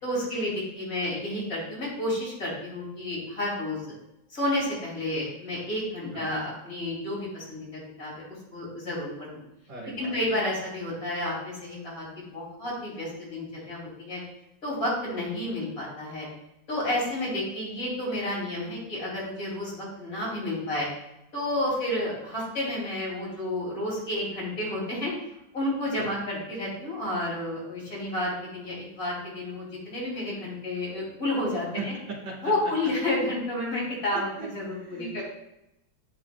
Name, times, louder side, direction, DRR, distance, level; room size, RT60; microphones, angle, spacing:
voice 1, 0.0-4.0 4.3-8.3 8.5-9.4 10.0-14.2 14.6-16.3 16.7-20.9 21.3-25.1 25.5-31.9 32.4-35.2, left 1 dB, 45° left, -5 dB, 2.7 m, -31 dB
voice 2, 9.7-10.1 26.0-26.2 31.8-32.5 34.1-34.5 34.8-35.2, right 3 dB, 70° right, -5 dB, 2.1 m, -38 dB
8.8 x 4.8 x 2.2 m, 0.87 s
omnidirectional pair, 2.1 m